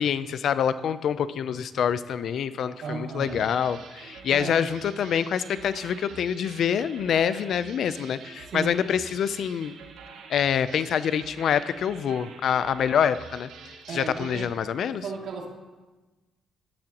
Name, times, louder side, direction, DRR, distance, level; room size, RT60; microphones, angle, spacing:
voice 1, 0.0-9.7 10.3-13.5 13.9-15.0, left 8 dB, 65° left, 14 dB, 0.6 m, -26 dB
voice 2, 2.8-3.5 4.3-4.6 8.5-8.8 13.9-14.5 14.9-15.5, right 4 dB, 70° right, -1 dB, 2.6 m, -35 dB
sound 1, 3.3-14.6, right 5 dB, 85° right, 1.5 m, -46 dB
17.5 x 13.0 x 3.0 m, 1.2 s
cardioid pair, 90°, 0 cm